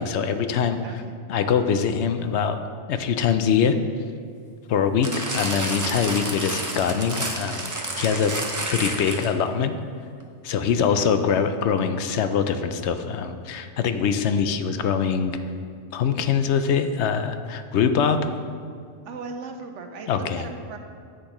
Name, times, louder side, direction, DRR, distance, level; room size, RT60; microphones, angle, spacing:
voice 1, 0.0-0.8 1.3-2.6 2.9-3.8 4.7-7.7 8.0-8.3 8.7-9.8 10.4-15.4 15.9-18.2 20.1-20.4, left 7 dB, 75° left, 9 dB, 0.8 m, -23 dB
voice 2, 0.8-1.2 10.9-11.1 19.1-20.8, right 4 dB, 85° right, 5 dB, 1.1 m, -37 dB
sound 1, 5.0-9.5 10.2-10.3, right 2 dB, 20° right, 0.6 m, -30 dB
10.0 x 7.9 x 3.0 m, 2.2 s
omnidirectional pair, 1.2 m